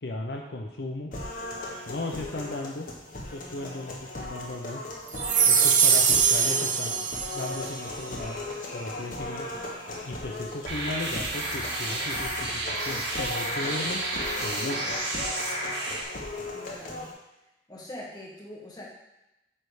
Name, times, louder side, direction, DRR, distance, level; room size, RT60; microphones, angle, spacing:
voice 1, 0.0-1.1 1.9-2.9 3.3-4.8 5.5-8.4 8.7-9.5 10.0-14.0 14.4-15.0, left 2 dB, 65° left, 1 dB, 0.7 m, -36 dB
sound 1, 1.1-17.1, left 2 dB, 50° left, 1.2 m, -37 dB
sound 2, 5.2-7.7, right 6 dB, 45° right, 0.6 m, -22 dB
sound 3, 10.7-16.0, right 2 dB, 85° right, 1.6 m, -31 dB
voice 2, 16.5-17.1 17.7-18.9, left 1 dB, 20° left, -4 dB, 1.5 m, -42 dB
8.5 x 3.4 x 4.8 m, 0.95 s
head